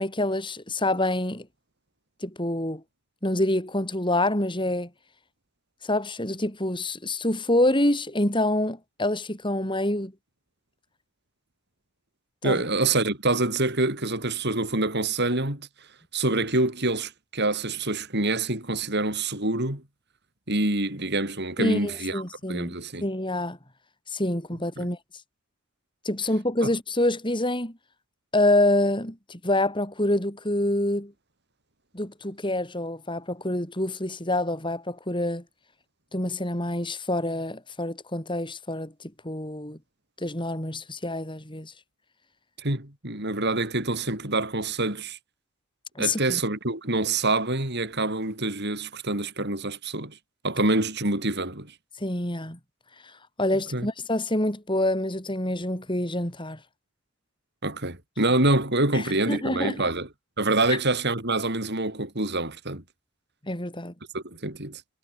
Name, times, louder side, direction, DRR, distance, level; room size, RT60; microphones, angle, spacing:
voice 1, 0.0-1.5 2.2-2.8 3.2-4.9 5.8-10.1 12.4-12.6 21.6-22.7 23.0-23.6 24.1-25.0 26.0-27.7 28.3-31.1 31.9-35.4 36.1-39.8 40.2-41.7 45.9-46.4 52.0-52.6 53.4-56.6 58.9-59.9 60.7-60.8 63.4-63.9, left 1 dB, 20° left, 5.2 m, -26 dB
voice 2, 12.4-15.7 16.1-19.8 20.5-22.2 22.5-23.1 24.8-24.9 26.6-26.7 42.6-45.2 46.0-50.2 50.4-51.7 53.7-53.9 57.6-60.1 60.4-62.8 64.1-64.8, right 2 dB, 50° right, 5.7 m, -26 dB
head